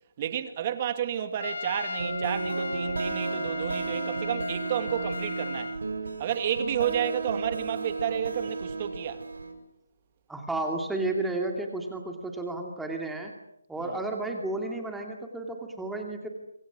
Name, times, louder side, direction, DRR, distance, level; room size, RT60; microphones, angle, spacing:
voice 1, 0.2-5.8 6.2-9.2 13.8-14.0, right 9 dB, 25° right, 2.3 m, -31 dB
Trumpet, 1.4-5.8, left 4 dB, 70° left, 1.2 m, -37 dB
sound 1, 2.0-9.5, right 3 dB, 70° right, 5.5 m, -33 dB
voice 2, 10.3-13.3 13.7-16.3, right 2 dB, 5° right, 2.5 m, -32 dB
27.5 x 26.5 x 6.2 m
hypercardioid pair, 165°, 0 cm